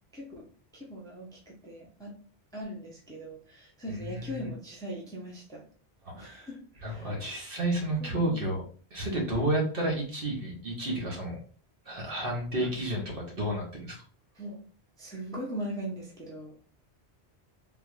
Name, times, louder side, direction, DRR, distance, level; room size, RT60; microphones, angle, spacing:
voice 1, 0.1-0.4 0.7-2.1 2.5-5.6 6.1-7.1 8.0-8.4 12.6-12.7 14.4-14.6 15.0-16.5, equal, 5° left, -3 dB, 0.7 m, -40 dB
voice 2, 3.9-4.5 6.0-6.5 6.8-8.6 8.9-11.4 11.9-14.0, right 1 dB, 55° right, -1 dB, 1.2 m, -31 dB
3.7 x 2.5 x 3.0 m, 0.42 s
omnidirectional pair, 1.2 m